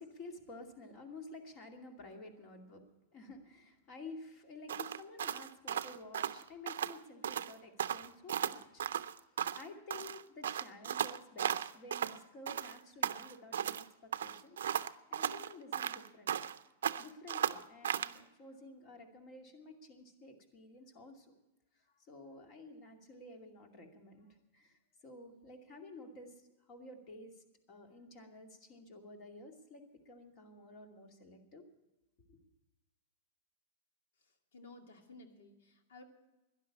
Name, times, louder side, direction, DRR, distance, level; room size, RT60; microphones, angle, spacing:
voice 1, 0.0-2.8 3.1-8.9 9.2-9.3 9.5-16.3 17.0-21.3 21.7-31.7 32.3-32.4, left 2 dB, 40° left, 4 dB, 2.4 m, -52 dB
sound 1, 4.7-7.0 7.2-7.5 7.8-9.7 9.9-12.2 12.5-13.8 14.1-16.6 16.8-18.2, right 9 dB, 85° right, 0.5 m, -36 dB
voice 2, 34.5-36.0, left 2 dB, 80° left, 4 dB, 2.3 m, -55 dB
12.0 x 11.0 x 8.4 m, 1.0 s
hypercardioid pair, 135°, 0 cm